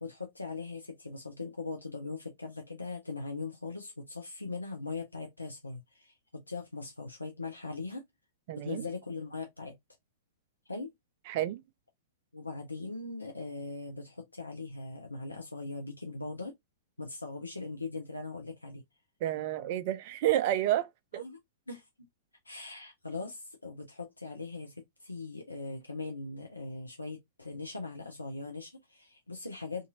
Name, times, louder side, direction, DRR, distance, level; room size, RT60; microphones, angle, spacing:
voice 1, 0.0-8.0 8.6-9.7 10.7-10.9 12.3-16.5 17.0-18.8 21.1-21.4 21.7-21.9 22.4-24.7 25.0-29.9, left 3 dB, 80° left, 0.5 m, -40 dB
voice 2, 8.5-8.9 11.3-11.6 19.2-20.9 21.1-21.2, right 13 dB, 45° right, 0.4 m, -30 dB
2.6 x 2.6 x 2.7 m
figure-of-eight pair, 105°, 0 cm